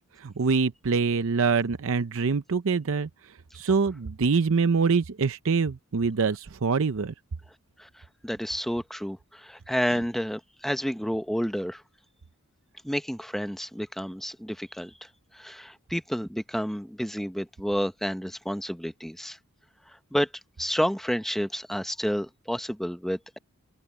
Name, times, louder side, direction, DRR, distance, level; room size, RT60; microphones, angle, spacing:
voice 1, 0.2-3.1 3.5-7.1, right 5 dB, 65° right, 0.6 m, -24 dB
voice 2, 8.2-11.8 12.8-14.9 15.3-19.4 20.1-20.3 20.6-23.4, equal, ahead, 0.8 m, -30 dB
head